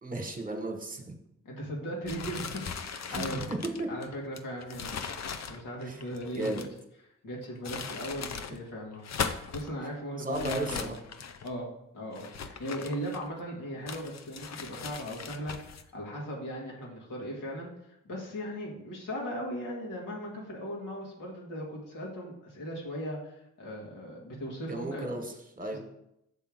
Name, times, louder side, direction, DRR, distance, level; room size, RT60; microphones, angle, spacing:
voice 1, 0.0-1.1 3.1-3.9 5.8-6.6 10.2-10.9 24.7-25.8, right 1 dB, 25° right, 4 dB, 1.5 m, -35 dB
voice 2, 1.4-3.5 3.9-6.6 7.2-11.0 11.4-11.7 11.9-25.2 25.7-25.8, equal, 80° left, -2 dB, 2.2 m, -38 dB
sound 1, 2.0-6.8 7.4-8.6 8.9-9.7 10.3-11.5 12.1-13.4 13.9-15.8, left 6 dB, 55° left, 0.7 m, -39 dB
7.4 x 3.6 x 6.1 m, 0.80 s
supercardioid pair, 55°, 32 cm